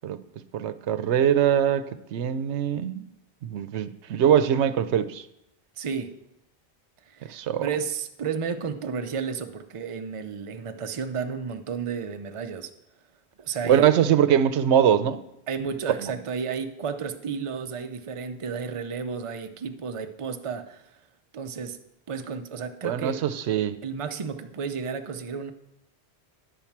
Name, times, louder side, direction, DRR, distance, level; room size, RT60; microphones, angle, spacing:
voice 1, 0.5-3.1 3.4-5.2 7.3-7.7 13.6-15.2 16.0-16.1 22.8-23.8, right 9 dB, 90° right, 0.9 m, -22 dB
voice 2, 5.8-6.1 7.1-12.7 13.4-13.9 15.5-20.8 21.3-21.8 22.1-23.2 23.8-25.5, right 6 dB, 40° right, 0.5 m, -32 dB
10.5 x 4.5 x 7.2 m
omnidirectional pair, 1.1 m